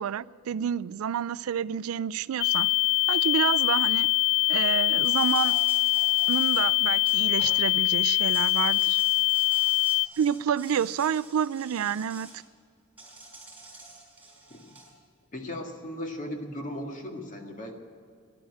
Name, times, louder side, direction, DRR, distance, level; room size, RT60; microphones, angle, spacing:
voice 1, 0.0-2.7 3.1-4.1 4.5-5.6 6.3-9.0 10.2-12.4, right 8 dB, 80° right, 0.4 m, -29 dB
sound 1, 2.4-10.1, left 23 dB, 65° left, 0.4 m, -23 dB
Insect, 5.0-7.7 8.1-12.4 13.0-14.9, right 2 dB, 10° right, 4.9 m, -48 dB
voice 2, 15.3-17.8, left 1 dB, 40° left, 1.8 m, -37 dB
13.0 x 10.5 x 9.1 m
head